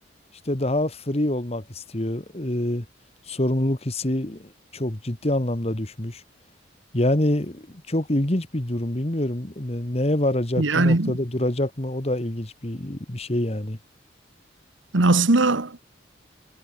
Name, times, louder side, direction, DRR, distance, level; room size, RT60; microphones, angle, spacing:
voice 1, 0.5-2.9 3.3-6.2 6.9-13.8, left 1 dB, 35° left, 1.8 m, -26 dB
voice 2, 10.6-11.1 14.9-15.8, right 2 dB, 85° right, 1.5 m, -19 dB
head